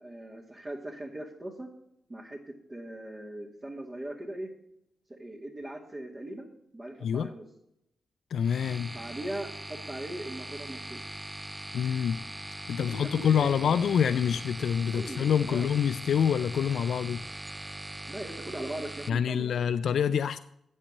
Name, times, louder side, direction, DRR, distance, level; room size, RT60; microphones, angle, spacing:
voice 1, 0.0-1.7 2.1-4.5 5.1-6.5 6.7-7.5 8.9-11.0 12.8-13.9 14.9-15.8 18.1-19.6, right 1 dB, 30° right, -5 dB, 2.1 m, -40 dB
voice 2, 8.3-8.9 11.7-12.2 12.7-17.2 19.1-20.4, left 8 dB, 75° left, 10 dB, 0.3 m, -26 dB
sound 1, 8.4-19.1, right 1 dB, 15° right, 0.3 m, -41 dB
8.6 x 6.7 x 7.3 m, 0.79 s
supercardioid pair, 55°, 0 cm